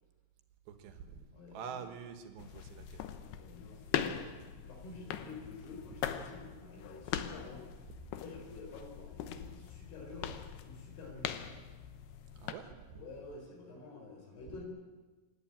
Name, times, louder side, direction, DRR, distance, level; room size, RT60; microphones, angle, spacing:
voice 1, 0.7-1.2 1.5-3.0 4.1-4.2 7.9-8.1 10.2-10.4 12.4-13.0 14.5-14.6, right 7 dB, 70° right, 8 dB, 3.3 m, -47 dB
voice 2, 1.3-1.9 3.1-4.2 4.6-7.7 8.1-11.3 12.9-14.6, left 3 dB, 55° left, 1 dB, 6.3 m, -50 dB
sound 1, 2.4-12.5, left 10 dB, 75° left, 2.5 m, -41 dB
27.0 x 11.5 x 8.9 m, 1.3 s
omnidirectional pair, 5.6 m